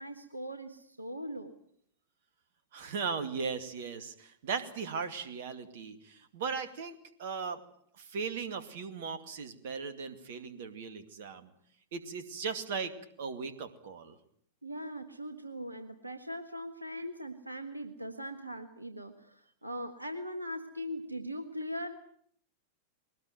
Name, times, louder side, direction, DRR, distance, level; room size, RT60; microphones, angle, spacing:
voice 1, 0.0-1.5 14.6-22.0, equal, 85° right, 8 dB, 1.5 m, -40 dB
voice 2, 2.7-7.6 8.0-11.5 11.9-14.1, right 5 dB, 55° right, 11 dB, 2.4 m, -38 dB
22.0 x 19.0 x 9.2 m, 0.65 s
figure-of-eight pair, 90°, 0 cm